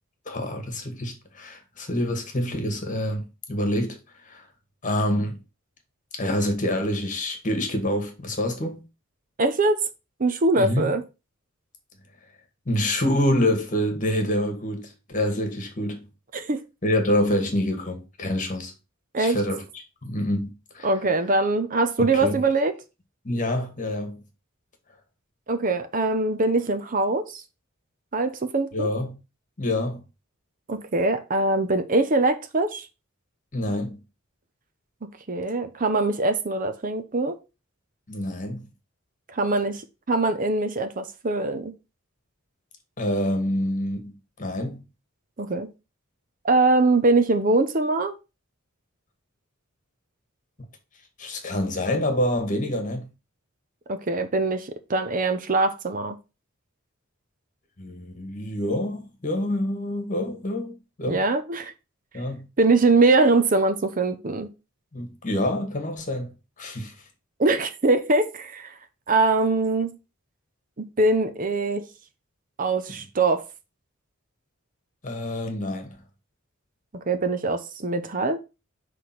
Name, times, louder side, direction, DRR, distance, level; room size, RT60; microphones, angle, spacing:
voice 1, 0.2-4.5 4.8-5.4 6.1-8.8 10.6-10.9 12.6-16.1 16.8-18.7 19.2-20.9 22.0-22.5 23.2-24.2 28.7-29.2 29.6-30.0 33.5-34.0 38.1-38.7 43.0-44.8 51.2-53.1 57.8-61.2 62.1-62.5 64.9-66.3 66.6-66.9 75.0-76.0, left 1 dB, 40° left, 1.5 m, -27 dB
voice 2, 9.4-9.8 10.2-11.0 16.3-16.6 19.1-19.4 20.8-22.7 25.5-27.4 28.1-28.9 30.7-32.9 35.3-37.4 39.3-39.8 40.1-41.7 45.4-45.7 46.4-48.1 53.9-56.2 61.1-61.7 62.6-64.5 67.4-68.7 69.1-70.0 70.8-71.9 72.6-73.4 77.1-78.4, right 2 dB, 40° right, 0.7 m, -22 dB
6.0 x 3.3 x 5.9 m
head